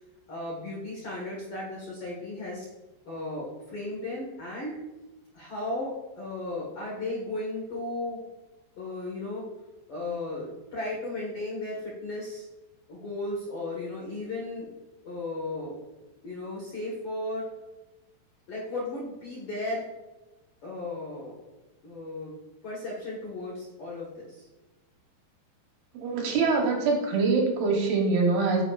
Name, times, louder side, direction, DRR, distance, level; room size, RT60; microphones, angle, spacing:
voice 1, 0.3-2.6 3.1-4.8 5.3-8.2 8.8-9.4 9.9-12.4 12.9-14.7 15.0-15.8 16.2-17.5 18.5-19.9 20.6-21.4 21.8-24.5, left 2 dB, 70° left, -4 dB, 1.3 m, -35 dB
voice 2, 25.9-28.6, right 4 dB, 70° right, 0 dB, 2.9 m, -24 dB
9.1 x 7.5 x 2.4 m, 1.1 s
omnidirectional pair, 5.0 m